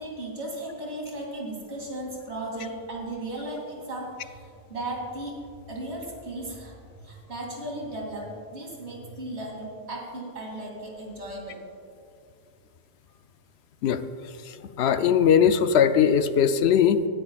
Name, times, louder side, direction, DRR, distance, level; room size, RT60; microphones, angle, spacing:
voice 1, 0.0-5.4 5.7-11.6, right 1 dB, 80° right, -2 dB, 3.0 m, -36 dB
voice 2, 13.8-17.1, left 8 dB, 75° left, 11 dB, 0.8 m, -21 dB
18.0 x 12.5 x 2.4 m, 2.3 s
omnidirectional pair, 1.1 m